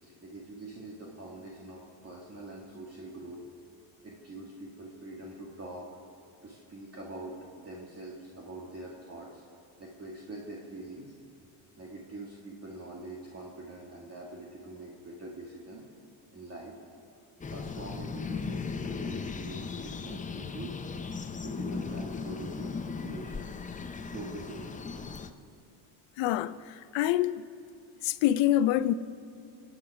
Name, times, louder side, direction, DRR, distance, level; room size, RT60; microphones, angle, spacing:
voice 1, 0.0-3.4 4.0-5.9 6.4-9.4 9.8-11.1 11.8-15.8 16.3-16.7 17.5-20.8 21.4-22.7 23.0-23.5 24.1-25.1, right 2 dB, 30° right, 2.1 m, -44 dB
sound 1, 17.4-25.3, left 5 dB, 15° left, 0.6 m, -37 dB
voice 2, 26.2-26.5 26.9-27.4 28.0-28.9, left 13 dB, 70° left, 0.7 m, -25 dB
26.0 x 9.1 x 4.9 m
cardioid pair, 115°, 46 cm